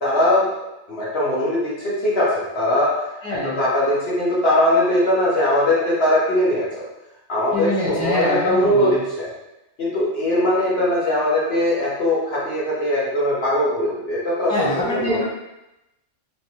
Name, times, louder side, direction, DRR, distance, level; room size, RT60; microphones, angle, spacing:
voice 1, 0.0-6.9 7.3-9.3 9.8-15.2, left 1 dB, 55° left, -7 dB, 1.0 m, -21 dB
voice 2, 3.2-3.6 7.5-8.9 14.5-15.2, left 1 dB, 5° left, -9 dB, 0.8 m, -24 dB
3.1 x 3.1 x 2.8 m, 0.93 s
omnidirectional pair, 1.4 m